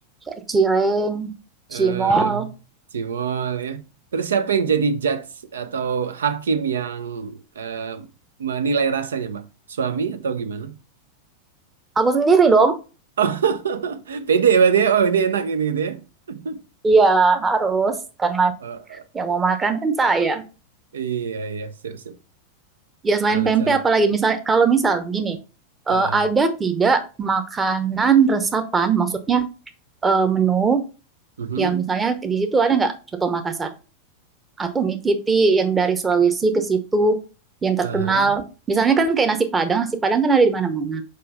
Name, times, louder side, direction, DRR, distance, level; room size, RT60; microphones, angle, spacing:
voice 1, 0.3-1.3 1.7-2.5 12.0-12.8 16.8-18.5 19.1-20.4 23.0-25.4 25.9-29.4 30.0-30.8 31.6-32.9 33.2-33.7 34.6-37.2 37.6-38.4 38.7-41.0, right 4 dB, 15° right, 1.0 m, -19 dB
voice 2, 1.7-2.5 2.9-3.8 4.1-5.3 5.5-8.1 8.4-9.4 9.7-10.8 13.2-16.6 18.6-18.8 20.9-22.2 23.3-23.8 25.9-26.2 31.4-31.9 37.8-38.3, right 6 dB, 65° right, 0.7 m, -24 dB
5.4 x 5.0 x 4.0 m
figure-of-eight pair, 90°, 0 cm